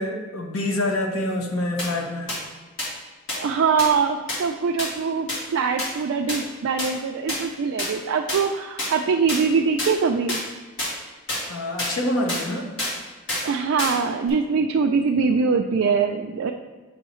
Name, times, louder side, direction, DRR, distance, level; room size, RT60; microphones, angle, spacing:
voice 1, 0.0-2.4 11.5-12.7, left 1 dB, 85° left, 2 dB, 1.0 m, -26 dB
sound 1, 1.8-1.9 2.3-2.4 2.8-2.9 3.3-3.4 3.8-3.9 4.3-4.4 4.8-4.9 5.3-5.4 5.8-5.9 6.3-6.4 6.8-6.9 7.3-7.4 7.8-7.9 8.3-8.4 8.8-8.9 9.3-9.4 9.8-9.9 10.3-10.4 10.8-10.9 11.3-11.4 11.8-11.9 12.3-12.4 12.8-12.9 13.3-13.5 13.8-14.0 14.3-14.4, left 1 dB, 60° left, 1.9 m, -27 dB
voice 2, 3.4-10.4 13.4-16.5, right 5 dB, 70° right, 3 dB, 0.3 m, -23 dB
7.8 x 5.5 x 3.0 m, 1.3 s
head